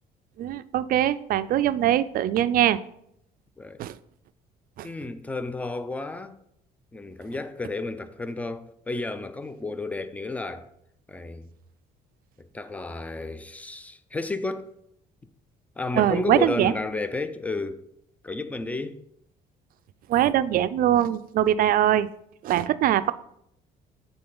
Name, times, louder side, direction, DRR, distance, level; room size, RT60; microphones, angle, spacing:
voice 1, 0.4-2.8 3.8-3.9 4.8-4.9 16.0-16.7 20.1-22.1 22.4-23.1, right 12 dB, 60° right, 0.4 m, -22 dB
voice 2, 4.8-6.4 6.9-10.7 11.1-11.5 12.5-14.7 15.8-17.8 18.2-19.0, left 3 dB, 10° left, 0.4 m, -32 dB
8.7 x 3.8 x 3.9 m
cardioid pair, 110°, 17 cm